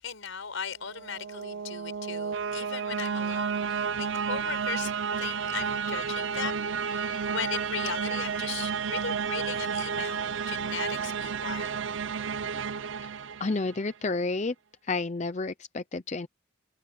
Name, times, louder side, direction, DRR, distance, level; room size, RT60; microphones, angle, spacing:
voice 1, 0.0-4.9 5.2-11.8, left 6 dB, 75° left, 5.0 m, -37 dB
sound 1, 0.9-13.9, right 6 dB, 65° right, 0.6 m, -31 dB
voice 2, 13.4-14.5 14.8-16.3, left 3 dB, 35° left, 0.6 m, -30 dB
head